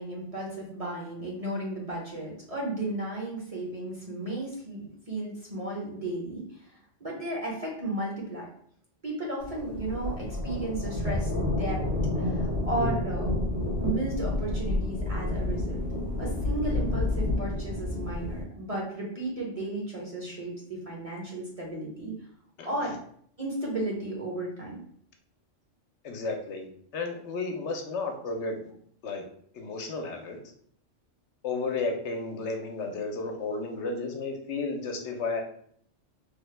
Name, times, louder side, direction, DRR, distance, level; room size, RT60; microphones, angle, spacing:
voice 1, 0.0-8.5 9.0-11.8 12.2-13.3 13.8-15.8 16.2-22.1 22.6-23.0 23.4-24.8, right 2 dB, 35° right, -3 dB, 0.7 m, -34 dB
sound 1, 9.4-18.4, left 2 dB, 75° right, 1.6 m, -29 dB
voice 2, 22.6-22.9 26.0-26.7 26.9-28.6 29.0-29.2 29.5-30.4 31.4-35.4, left 3 dB, 75° left, 3 dB, 0.9 m, -33 dB
3.3 x 2.1 x 3.2 m, 0.63 s
omnidirectional pair, 1.2 m